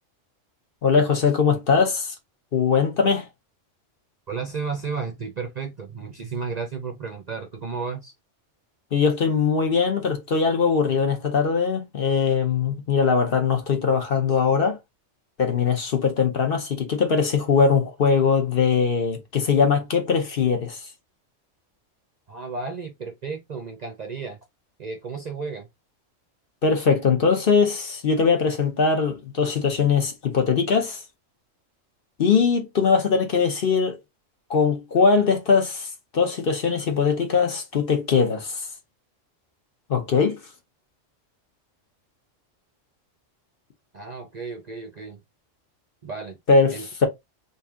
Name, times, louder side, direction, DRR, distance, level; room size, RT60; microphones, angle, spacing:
voice 1, 0.8-2.2 2.5-3.3 8.9-14.8 15.4-20.9 26.6-31.0 32.2-34.0 34.5-38.7 39.9-40.4 46.5-47.1, left 5 dB, 50° left, 0.9 m, -21 dB
voice 2, 4.3-8.1 22.3-24.4 24.8-25.7 43.9-45.2 46.0-46.4 46.7-46.9, right 5 dB, 45° right, 0.5 m, -33 dB
3.2 x 2.6 x 3.5 m
omnidirectional pair, 1.3 m